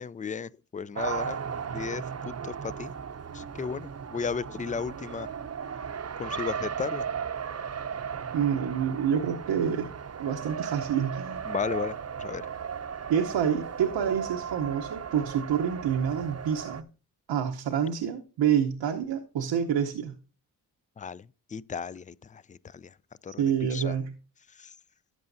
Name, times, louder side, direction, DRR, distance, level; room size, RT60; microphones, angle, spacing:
voice 1, 0.0-1.4 1.7-2.9 3.3-5.3 6.2-7.1 11.5-12.4 21.0-22.9 23.2-24.0 24.5-24.7, left 6 dB, 20° left, 0.3 m, -35 dB
Race car auto racing, 1.0-16.8, right 7 dB, 35° right, 0.7 m, -36 dB
voice 2, 8.3-9.9 10.2-11.5 13.1-16.8 17.3-20.1 23.4-24.0, right 8 dB, 85° right, 1.0 m, -27 dB
12.5 x 7.8 x 2.6 m
cardioid pair, 55°, 42 cm